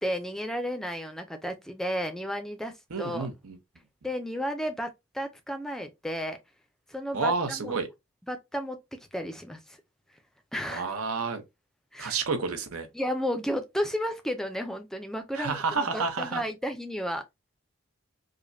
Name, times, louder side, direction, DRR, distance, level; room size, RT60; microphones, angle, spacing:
voice 1, 0.0-3.3 4.0-6.4 6.9-7.7 8.3-9.8 10.5-10.9 11.9-12.2 12.9-17.2, equal, ahead, 0.4 m, -33 dB
voice 2, 2.9-3.6 7.1-7.9 10.7-11.4 12.0-12.9 15.3-16.4, right 4 dB, 85° right, 0.8 m, -30 dB
4.9 x 2.1 x 2.6 m
head